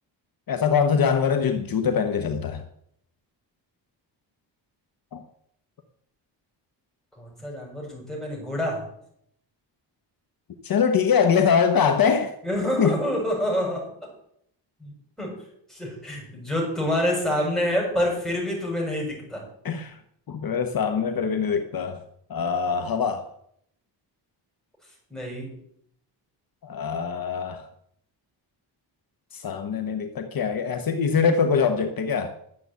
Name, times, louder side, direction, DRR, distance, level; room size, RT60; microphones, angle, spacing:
voice 1, 0.5-2.6 5.1-5.2 10.6-12.3 12.8-13.0 19.6-20.0 20.3-22.0 22.3-23.2 26.6-27.6 29.3-32.3, left 6 dB, 50° left, 1.1 m, -23 dB
voice 2, 7.2-8.9 12.4-14.1 14.8-14.9 15.2-15.4 15.7-19.4 25.1-25.5, equal, ahead, 6.6 m, -27 dB
12.0 x 7.8 x 8.4 m
wide cardioid pair, 140°, 44 cm